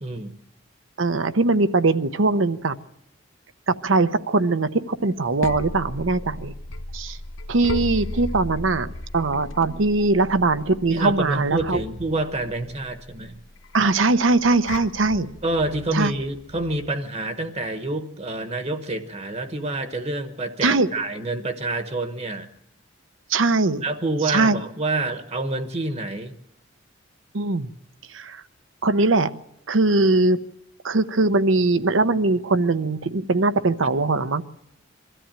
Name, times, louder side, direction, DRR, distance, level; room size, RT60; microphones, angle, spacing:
voice 1, 0.0-0.3 10.9-13.4 15.4-22.5 23.8-26.4, right 2 dB, 35° right, 8 dB, 1.1 m, -27 dB
voice 2, 1.0-2.7 3.7-6.5 6.9-7.2 7.5-11.8 13.7-15.3 15.9-16.1 20.6-20.9 23.3-23.8 24.3-24.6 27.3-27.7 28.1-28.4 28.8-29.3 29.7-30.4 30.8-34.4, right 3 dB, 75° right, 11 dB, 0.8 m, -21 dB
sound 1, 5.0-16.9, left 1 dB, 75° left, 1.1 m, -36 dB
22.0 x 13.5 x 8.8 m, 0.81 s
head